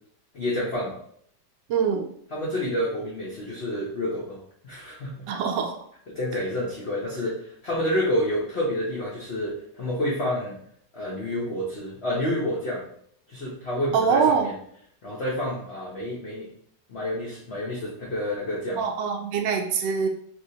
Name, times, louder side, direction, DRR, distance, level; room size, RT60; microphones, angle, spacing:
voice 1, 0.3-1.0 2.3-5.1 6.1-10.6 10.9-12.8 13.3-14.5 15.0-16.5 16.9-18.8, left 1 dB, 85° left, -6 dB, 0.5 m, -29 dB
voice 2, 1.7-2.1 5.3-5.8 13.9-14.5 18.8-20.1, right 6 dB, 75° right, 2 dB, 1.1 m, -23 dB
3.2 x 2.8 x 2.7 m, 0.66 s
omnidirectional pair, 2.2 m